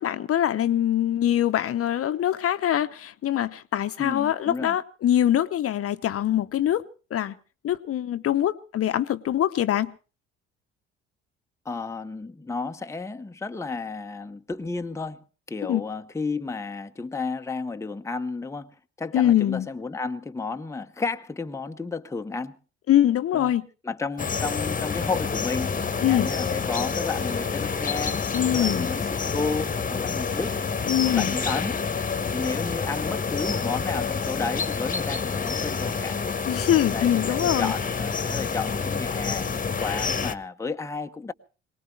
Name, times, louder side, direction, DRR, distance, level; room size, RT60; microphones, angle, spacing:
voice 1, 0.0-6.8 7.1-7.4 7.6-9.9 15.7-15.8 19.1-19.7 22.9-23.7 26.0-26.3 28.3-28.9 30.9-31.3 36.5-37.7, left 11 dB, 45° left, 0.9 m, -23 dB
voice 2, 4.0-4.8 11.6-18.7 19.0-22.6 23.3-23.5 23.8-30.6 31.0-31.8 32.3-36.2 36.9-41.3, left 4 dB, 10° left, 0.8 m, -32 dB
sound 1, 24.2-40.3, left 5 dB, 25° left, 1.2 m, -28 dB
22.5 x 19.5 x 3.3 m
figure-of-eight pair, 50°, 33 cm